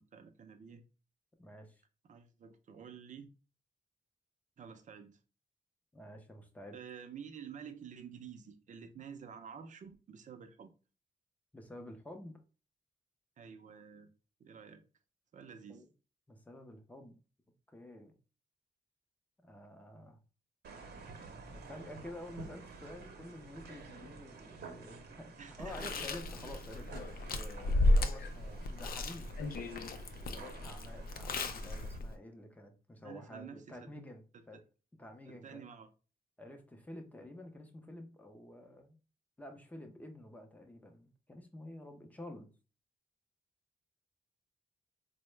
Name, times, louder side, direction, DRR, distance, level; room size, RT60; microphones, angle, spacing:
voice 1, 0.1-0.8 2.0-3.3 4.6-5.2 6.7-10.7 13.4-14.1 14.4-14.8 15.3-15.8 25.4-26.1 33.0-33.8 35.3-35.9, right 7 dB, 50° right, 0.5 m, -50 dB
voice 2, 1.4-1.8 5.9-6.8 11.5-12.4 15.7-15.9 16.3-17.1 17.7-18.2 19.4-20.2 21.5-29.5 30.2-34.6 35.0-35.6 36.4-39.0 39.4-42.5, left 1 dB, 10° left, 0.5 m, -50 dB
sound 1, 20.6-32.0, right 4 dB, 85° right, 0.7 m, -51 dB
Chewing mastication, 25.6-32.1, left 2 dB, 65° left, 0.4 m, -34 dB
4.5 x 2.1 x 3.1 m
wide cardioid pair, 175°, 17 cm